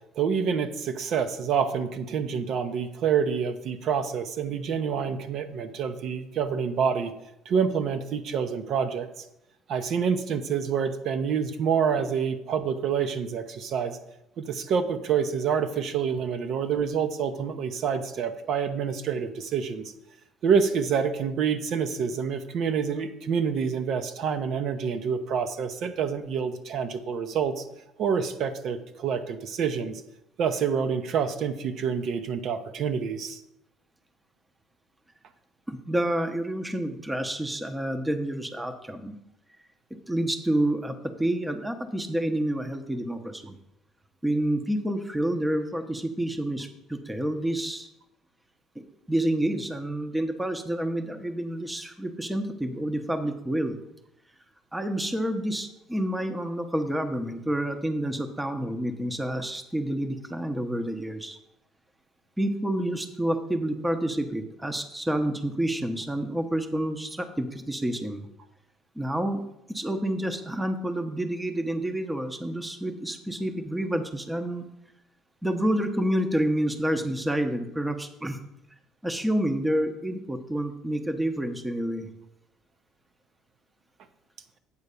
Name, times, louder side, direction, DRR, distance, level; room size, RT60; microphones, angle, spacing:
voice 1, 0.2-7.1 7.5-9.1 9.7-14.0 14.4-19.9 20.4-27.6 28.0-30.0 30.4-33.4, right 6 dB, 55° right, 8 dB, 0.7 m, -27 dB
voice 2, 35.7-39.2 40.1-43.6 44.2-47.9 49.1-53.8 54.7-61.4 62.4-68.3 69.0-69.4 69.7-74.6 75.4-78.4 79.0-82.1, right 1 dB, 5° right, 7 dB, 0.8 m, -28 dB
8.4 x 4.5 x 6.7 m, 0.85 s
cardioid pair, 125°, 0 cm